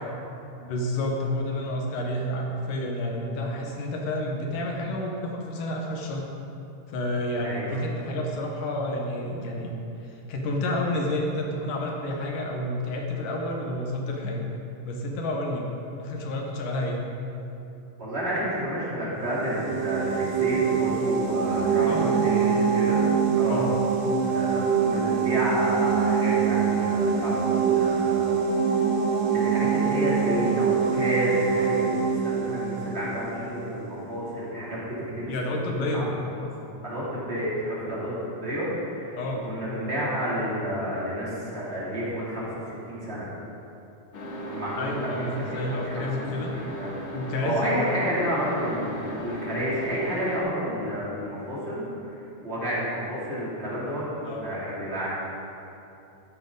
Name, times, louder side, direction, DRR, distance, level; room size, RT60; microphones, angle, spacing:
voice 1, 0.6-6.2 6.9-9.7 10.0-14.5 14.8-15.6 16.0-17.0 21.9-22.2 23.5-23.7 35.2-36.1 39.2-39.5 44.8-46.5 47.1-47.7 54.2-54.5, left 1 dB, 80° left, 0 dB, 2.9 m, -30 dB
voice 2, 7.4-7.8 18.0-23.7 24.2-28.3 29.3-35.3 35.7-36.1 36.4-39.2 39.4-43.3 44.4-46.1 46.5-47.0 47.4-52.2 52.4-55.2, equal, 20° right, -8 dB, 2.9 m, -30 dB
sound 1, 19.2-33.9, right 6 dB, 75° right, 2.5 m, -24 dB
sound 2, 44.1-50.4, right 1 dB, 50° left, 1.7 m, -37 dB
13.5 x 9.8 x 4.0 m, 2.8 s
omnidirectional pair, 3.7 m